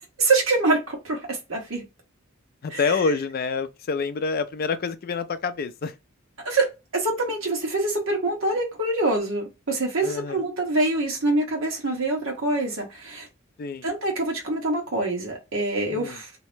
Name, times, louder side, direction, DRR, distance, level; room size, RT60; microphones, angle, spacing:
voice 1, 0.2-1.2 1.5-1.8 2.7-2.8 6.4-6.7 6.9-13.3 13.8-16.3, right 2 dB, 70° right, 1.2 m, -25 dB
voice 2, 2.6-5.9 10.0-10.4 13.6-13.9 15.9-16.2, left 4 dB, 45° left, 0.4 m, -27 dB
2.7 x 2.0 x 3.2 m
head